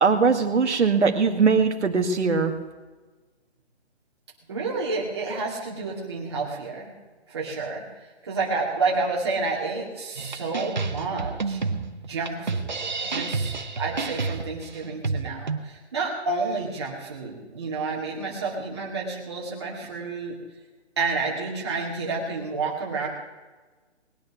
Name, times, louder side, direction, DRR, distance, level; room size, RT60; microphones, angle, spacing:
voice 1, 0.0-2.5, right 5 dB, 75° right, 4 dB, 2.0 m, -20 dB
voice 2, 4.5-6.9 7.3-11.6 12.0-12.6 13.0-20.4 21.0-23.1, right 3 dB, 25° right, -3 dB, 2.4 m, -30 dB
sound 1, 10.2-15.6, right 4 dB, 40° right, 0.8 m, -30 dB
20.5 x 9.2 x 6.2 m, 1.3 s
hypercardioid pair, 180°, 35 cm